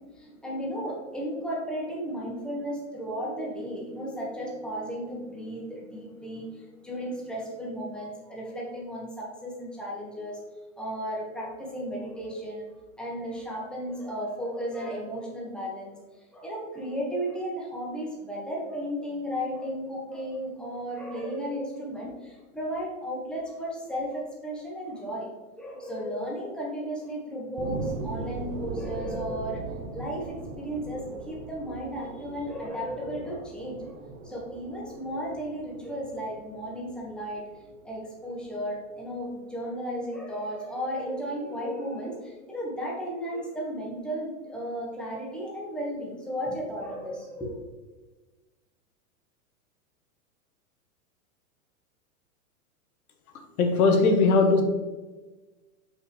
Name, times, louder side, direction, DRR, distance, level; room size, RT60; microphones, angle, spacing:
voice 1, 0.1-10.4 10.8-12.7 13.0-25.3 25.6-29.7 29.9-33.9 34.2-37.4 37.8-47.6, equal, ahead, -4 dB, 1.5 m, -34 dB
sound 1, 27.6-38.6 39.1-39.2, right 3 dB, 30° right, 0.8 m, -40 dB
voice 2, 53.6-54.6, left 3 dB, 80° left, 5 dB, 1.3 m, -19 dB
6.4 x 5.7 x 3.2 m, 1.2 s
hypercardioid pair, 140°, 43 cm